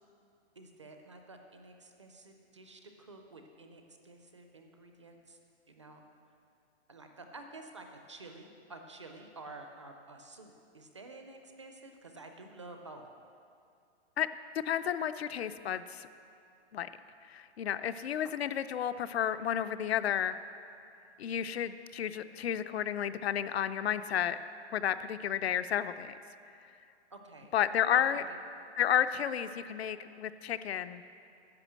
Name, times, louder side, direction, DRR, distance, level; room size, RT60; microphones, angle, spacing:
voice 1, 0.6-5.4 5.7-6.0 6.9-13.1 27.1-27.5 27.9-28.4, right 2 dB, 25° right, 4 dB, 0.4 m, -50 dB
voice 2, 14.7-16.1 16.7-16.9 17.3-20.4 21.2-24.4 24.7-26.2 27.5-28.2 28.8-31.0, left 9 dB, 65° left, 12 dB, 0.5 m, -32 dB
10.5 x 6.2 x 7.5 m, 2.4 s
hypercardioid pair, 175°, 34 cm